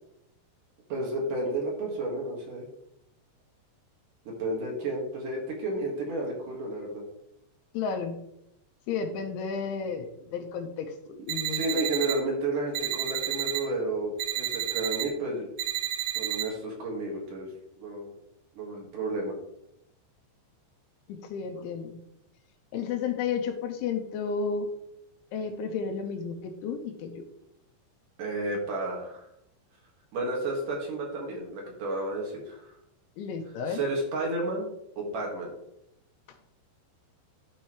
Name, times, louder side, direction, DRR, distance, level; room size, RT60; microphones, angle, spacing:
voice 1, 0.9-2.7 4.3-7.0 11.5-15.5 16.1-17.5 17.8-18.1 18.6-19.3 28.2-29.3 30.1-32.7 33.7-34.7 35.0-35.6, right 2 dB, 60° right, -1 dB, 2.5 m, -32 dB
voice 2, 7.7-8.2 8.9-11.8 21.1-22.0 22.7-24.7 25.3-27.2 33.2-33.8, left 6 dB, 85° left, 4 dB, 3.1 m, -32 dB
sound 1, 11.3-12.2 12.7-13.6 14.2-15.1 15.6-16.4, right 13 dB, 90° right, 3.9 m, -30 dB
12.5 x 5.5 x 3.0 m, 0.79 s
omnidirectional pair, 5.4 m